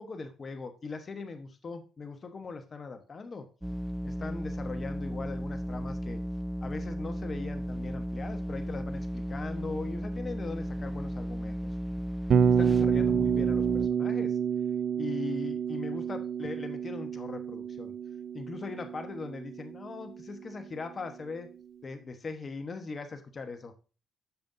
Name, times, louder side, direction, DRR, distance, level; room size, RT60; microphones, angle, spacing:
voice 1, 0.0-3.5 4.0-6.2 6.6-11.7 12.6-14.4 15.0-17.9 18.3-21.5 21.8-23.7, left 4 dB, 40° left, 7 dB, 1.1 m, -40 dB
sound 1, 3.6-13.9, equal, 5° right, 0.4 m, -35 dB
Bass guitar, 12.3-20.4, right 7 dB, 60° right, 0.6 m, -29 dB
13.0 x 5.3 x 2.7 m, 0.34 s
cardioid pair, 90°, 0 cm